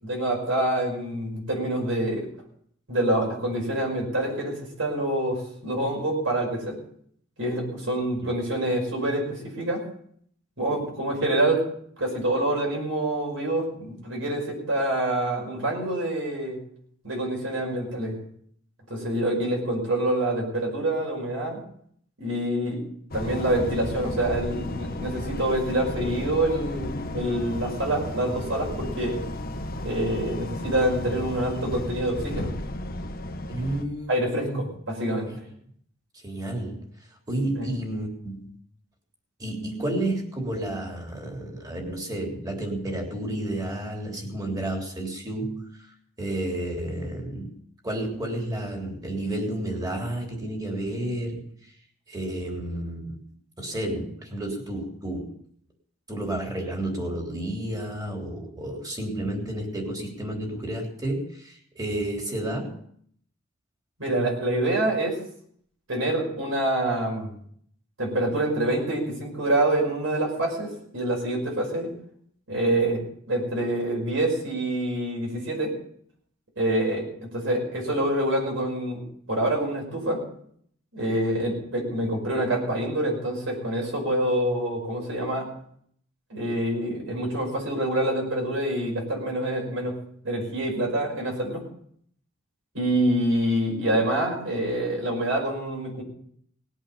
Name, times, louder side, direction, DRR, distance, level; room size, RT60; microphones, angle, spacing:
voice 1, 0.0-2.3 2.9-6.8 7.4-9.8 10.6-11.6 12.0-16.6 17.0-18.2 18.9-21.6 22.2-22.8 23.1-29.2 29.8-32.5 34.1-35.3 37.6-37.7 64.0-65.2 65.9-67.3 68.0-71.9 72.5-75.7 76.6-79.0 79.3-80.2 80.9-85.5 86.3-90.0 90.2-91.6 92.7-96.0, right 1 dB, 70° right, -2 dB, 5.7 m, -26 dB
sound 1, 23.1-33.8, left 1 dB, 45° left, 1.3 m, -34 dB
voice 2, 33.5-34.6 36.2-36.8 37.3-38.5 39.4-45.7 46.2-47.5 47.8-51.5 52.1-53.2 53.6-55.3 56.1-62.7, right 1 dB, 20° right, 1 dB, 3.6 m, -31 dB
19.5 x 8.3 x 7.0 m, 0.65 s
head